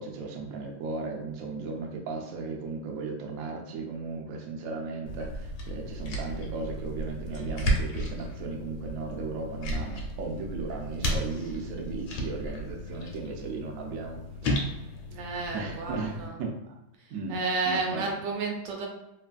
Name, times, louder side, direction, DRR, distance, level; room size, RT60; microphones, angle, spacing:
voice 1, 0.0-14.5 15.5-16.5 17.1-17.4 17.7-18.1, right 4 dB, 90° right, 0 dB, 0.7 m, -36 dB
sound 1, 5.1-16.3, equal, 80° left, 1.4 m, -34 dB
voice 2, 7.2-7.7 15.1-16.3 17.3-18.9, right 3 dB, 75° right, 0 dB, 1.2 m, -32 dB
3.1 x 2.3 x 2.4 m, 0.91 s
omnidirectional pair, 2.1 m